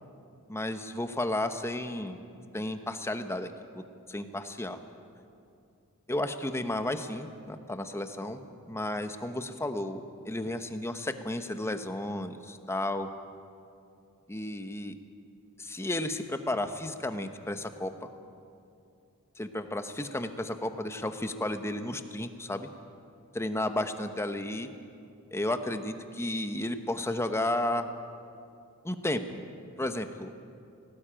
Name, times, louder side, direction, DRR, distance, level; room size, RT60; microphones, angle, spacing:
voice 1, 0.5-2.2 2.5-3.8 4.1-4.8 6.1-8.4 8.7-13.1 14.3-14.9 15.6-17.9 19.4-22.7 23.3-24.7 25.3-27.9 28.8-29.4 29.8-30.3, left 1 dB, 10° left, 8 dB, 1.0 m, -33 dB
18.5 x 17.5 x 8.9 m, 2.5 s
head